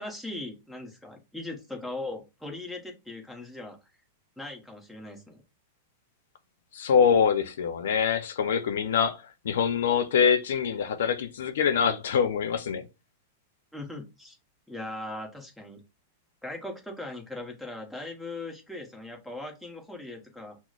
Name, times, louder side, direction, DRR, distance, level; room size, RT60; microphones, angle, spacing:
voice 1, 0.0-3.8 4.4-5.4 13.7-14.4 14.7-15.8 16.4-20.6, left 2 dB, ahead, 1.0 m, -39 dB
voice 2, 6.7-9.2 9.4-12.9, left 7 dB, 85° left, 0.5 m, -24 dB
6.0 x 2.1 x 2.4 m
supercardioid pair, 140°, 0 cm